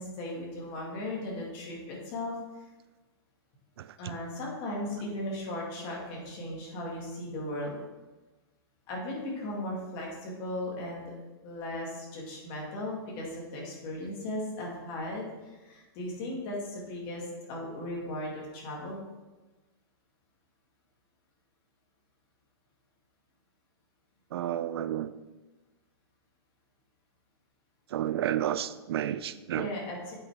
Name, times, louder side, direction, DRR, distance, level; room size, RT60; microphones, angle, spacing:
voice 1, 0.0-2.3 4.0-7.8 8.9-11.1 11.4-19.0 29.5-30.1, left 1 dB, 30° left, -3 dB, 1.9 m, -37 dB
voice 2, 24.3-25.1 27.9-29.7, right 11 dB, 70° right, 14 dB, 0.4 m, -31 dB
8.2 x 5.5 x 3.4 m, 1.2 s
hypercardioid pair, 160°, 14 cm